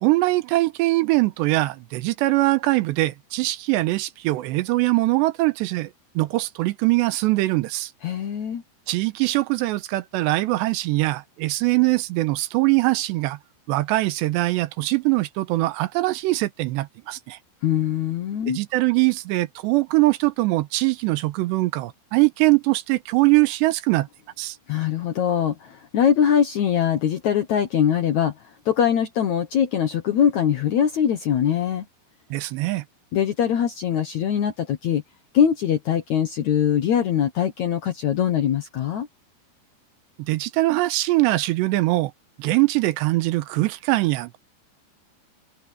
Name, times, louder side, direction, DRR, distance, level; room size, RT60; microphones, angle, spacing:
voice 1, 0.0-5.9 6.2-7.9 8.9-13.4 13.7-17.4 18.5-24.1 24.4-24.6 32.3-32.8 40.2-42.1 42.4-44.4, right 20 dB, 90° right, 3.0 m, -22 dB
voice 2, 8.0-8.6 17.6-18.6 24.7-31.9 33.1-35.0 35.3-39.1, left 9 dB, 70° left, 1.8 m, -22 dB
omnidirectional pair, 5.0 m